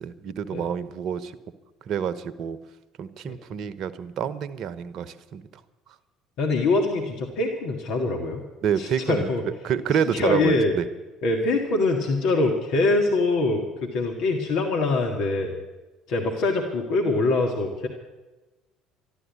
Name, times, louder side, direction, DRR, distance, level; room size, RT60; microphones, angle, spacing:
voice 1, 0.0-1.3 1.9-2.6 3.0-5.4 8.6-10.8, right 8 dB, 55° right, 14 dB, 0.9 m, -28 dB
voice 2, 6.4-8.5 8.8-9.4 10.0-10.7 11.2-15.5 16.1-17.9, left 3 dB, 65° left, 2 dB, 1.8 m, -24 dB
12.5 x 12.5 x 8.3 m, 1.2 s
hypercardioid pair, 65°, 0 cm